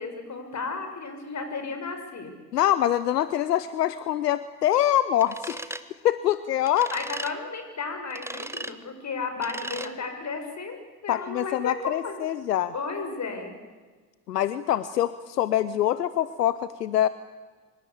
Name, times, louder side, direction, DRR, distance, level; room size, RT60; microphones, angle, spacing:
voice 1, 0.0-2.3 6.9-12.2 12.7-13.6, left 4 dB, 35° left, 6 dB, 6.7 m, -34 dB
voice 2, 2.5-6.9 11.1-12.7 14.3-17.1, left 12 dB, 80° left, 15 dB, 0.9 m, -25 dB
sound 1, 5.2-5.8 6.6-7.3 8.1-8.7 9.4-9.9, right 1 dB, 5° right, 1.4 m, -36 dB
25.5 x 25.5 x 8.5 m, 1.4 s
figure-of-eight pair, 60°, 47 cm